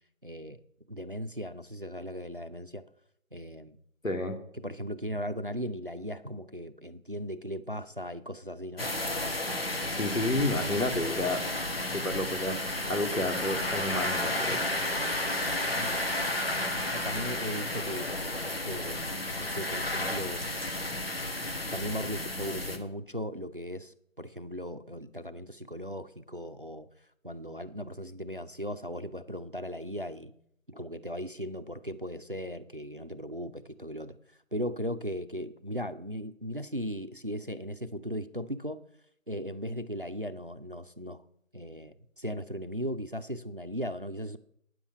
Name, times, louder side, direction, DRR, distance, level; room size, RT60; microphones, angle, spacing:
voice 1, 0.2-0.6 0.9-2.8 3.3-3.8 4.6-8.9 11.9-12.0 15.7-16.0 16.9-18.4 18.6-20.5 21.7-26.9 27.2-30.3 30.7-34.2 34.5-38.8 39.3-41.2 41.5-44.4, equal, 40° right, 11 dB, 0.6 m, -37 dB
voice 2, 4.0-4.4 9.9-11.4 11.9-14.6, left 1 dB, 80° left, 5 dB, 2.6 m, -30 dB
sound 1, 8.8-22.8, left 1 dB, 45° left, 1.5 m, -32 dB
9.4 x 7.3 x 8.0 m, 0.69 s
figure-of-eight pair, 170°, 40 cm